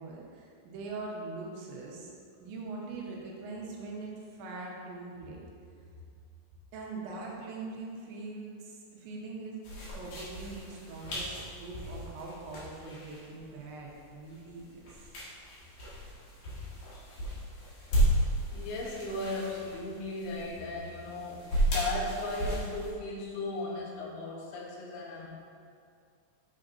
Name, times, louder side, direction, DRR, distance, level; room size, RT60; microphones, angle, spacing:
voice 1, 0.0-2.1 2.4-5.4 6.7-9.6 9.9-14.6, right 3 dB, 80° right, -3 dB, 3.2 m, -42 dB
sound 1, 9.6-22.9, right 1 dB, 55° left, 2.3 m, -34 dB
voice 2, 18.5-25.3, left 2 dB, 75° left, -2 dB, 3.2 m, -36 dB
8.7 x 6.9 x 2.6 m, 2.3 s
omnidirectional pair, 5.3 m